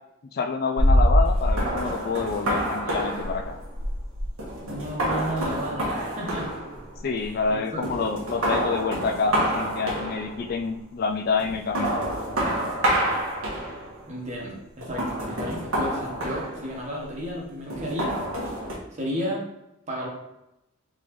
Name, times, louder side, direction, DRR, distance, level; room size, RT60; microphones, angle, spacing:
voice 1, 0.3-3.6 7.0-12.0, left 4 dB, 45° left, 5 dB, 0.3 m, -27 dB
sound 1, 0.8-7.5 7.8-10.5 11.4-14.0 14.8-17.0 17.7-18.8, equal, 80° right, 1.4 m, -26 dB
voice 2, 4.6-6.5 7.2-7.8 14.1-18.1 19.0-19.4 19.9-20.1, equal, 35° right, -2 dB, 1.1 m, -33 dB
3.9 x 3.9 x 3.0 m, 0.85 s
head